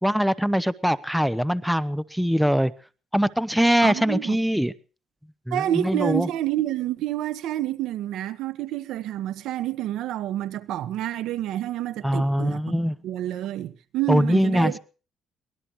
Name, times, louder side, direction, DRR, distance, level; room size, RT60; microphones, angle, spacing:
voice 1, 0.0-2.7 3.1-4.7 5.5-6.3 12.0-13.0 14.1-14.8, equal, ahead, 0.7 m, -22 dB
voice 2, 3.8-4.4 5.5-14.8, right 13 dB, 85° right, 1.2 m, -28 dB
24.0 x 19.0 x 3.1 m
cardioid pair, 125°, 0 cm